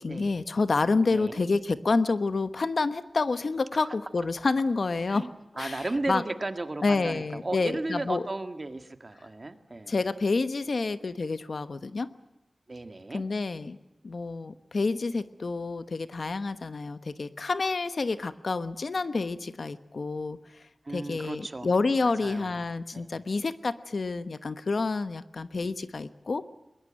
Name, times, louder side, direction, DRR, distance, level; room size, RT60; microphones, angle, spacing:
voice 1, 0.0-5.3 5.5-6.2 6.8-8.2 9.9-12.1 13.1-13.8 14.0-20.4 20.9-26.4, left 3 dB, 70° left, 12 dB, 1.1 m, -28 dB
voice 2, 1.1-1.4 3.8-4.0 5.1-9.9 12.7-13.2 20.8-21.7 22.0-22.6 22.9-23.1, right 2 dB, 40° right, 8 dB, 1.8 m, -35 dB
21.5 x 21.0 x 8.8 m, 0.99 s
wide cardioid pair, 70°, 0 cm